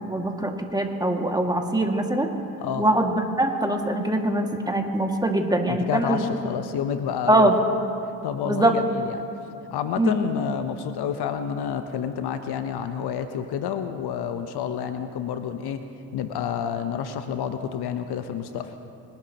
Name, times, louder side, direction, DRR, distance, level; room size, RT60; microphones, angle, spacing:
voice 1, 0.1-2.3 2.8-6.3 7.3-7.6 8.4-8.8 10.0-10.2, right 1 dB, 10° right, 2 dB, 2.1 m, -23 dB
voice 2, 5.7-7.5 8.2-9.2 9.7-15.8 16.1-18.7, left 8 dB, 65° left, 9 dB, 0.9 m, -29 dB
23.5 x 12.0 x 3.0 m, 2.6 s
hypercardioid pair, 50°, 42 cm